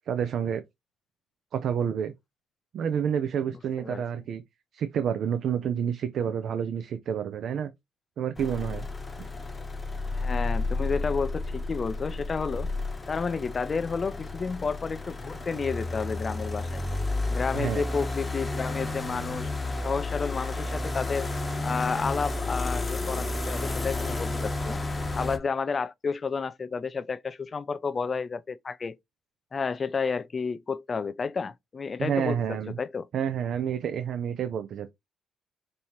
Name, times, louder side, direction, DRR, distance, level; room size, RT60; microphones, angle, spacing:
voice 1, 0.1-0.6 1.5-2.1 2.7-4.4 4.7-7.7 8.2-8.9 17.5-17.8 32.0-32.8 33.1-34.9, right 8 dB, 60° right, 0.5 m, -29 dB
sound 1, 8.4-25.4, left 2 dB, 15° left, 0.8 m, -32 dB
voice 2, 10.1-12.7 13.1-16.8 17.3-19.5 19.8-21.3 21.6-24.8 25.1-29.0 29.5-33.1, left 5 dB, 35° left, 0.4 m, -31 dB
5.3 x 2.8 x 3.0 m
cardioid pair, 110°, 0 cm